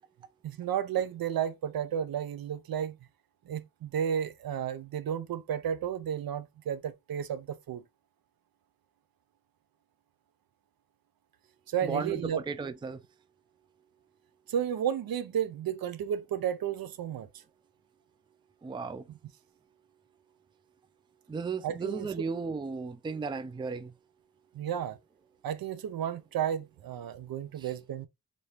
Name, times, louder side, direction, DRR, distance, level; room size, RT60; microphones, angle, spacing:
voice 1, 0.4-3.0 3.5-7.8 11.7-12.4 14.5-17.3 19.1-19.2 21.6-22.3 24.5-25.0 25.4-28.1, right 9 dB, 70° right, 0.5 m, -32 dB
voice 2, 11.8-13.0 18.6-19.0 21.3-23.9 27.6-27.7, right 4 dB, 15° right, 0.3 m, -35 dB
3.3 x 2.6 x 2.8 m
wide cardioid pair, 85°, 37 cm